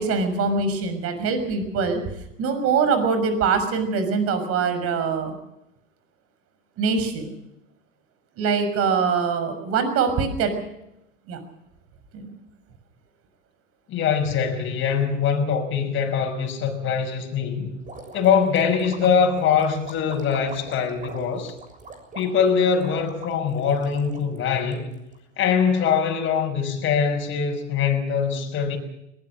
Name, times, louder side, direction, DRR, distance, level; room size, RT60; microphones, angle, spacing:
voice 1, 0.0-2.0 2.4-5.4 6.8-7.3 8.4-10.6 11.3-11.4 12.1-12.3, right 5 dB, 40° right, 6.3 m, -23 dB
voice 2, 13.9-17.7 18.1-21.5 22.1-24.9 25.4-28.8, left 6 dB, 30° left, 5.6 m, -23 dB
sound 1, 17.8-25.2, right 3 dB, 20° right, 6.8 m, -41 dB
22.0 x 20.0 x 6.5 m
hypercardioid pair, 115°, 38 cm